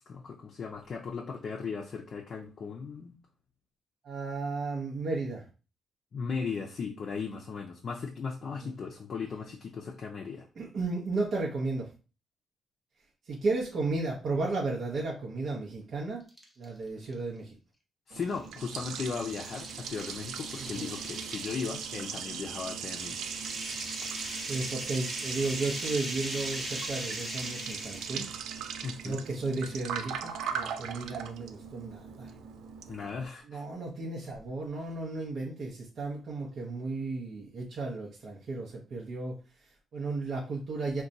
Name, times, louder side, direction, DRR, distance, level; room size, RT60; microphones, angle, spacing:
voice 1, 0.1-3.1 6.1-10.5 18.1-23.4 28.8-29.2 32.9-33.6, left 5 dB, 50° left, 1 dB, 0.4 m, -37 dB
voice 2, 4.0-5.4 8.6-8.7 10.6-11.9 13.2-16.2 16.6-17.6 20.6-20.9 24.5-28.3 29.0-32.3 33.4-41.0, right 3 dB, 55° right, -3 dB, 0.7 m, -34 dB
sound 1, 16.3-16.7 17.1-17.2 18.2-28.4, equal, 10° right, 0.7 m, -40 dB
Liquid, 18.1-33.3, right 7 dB, 80° right, 0.3 m, -39 dB
2.5 x 2.2 x 3.9 m, 0.34 s
cardioid pair, 90°, 0 cm